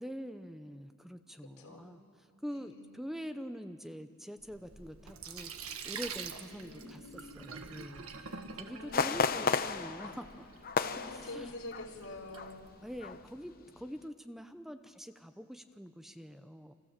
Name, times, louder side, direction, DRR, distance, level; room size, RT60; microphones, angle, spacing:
voice 1, 0.0-10.5 10.8-11.5 12.8-16.7, equal, ahead, 8 dB, 0.7 m, -45 dB
voice 2, 1.6-1.9 2.5-2.9 6.5-7.4 8.6-9.4 10.7-12.7, left 2 dB, 80° left, 1 dB, 4.3 m, -47 dB
Sink (filling or washing), 4.4-13.2, right 5 dB, 85° right, 1.6 m, -47 dB
sound 1, 8.9-12.0 12.3-12.5 13.0-13.4 13.8-13.9, left 5 dB, 45° left, 0.8 m, -33 dB
29.5 x 26.0 x 7.4 m, 2.2 s
head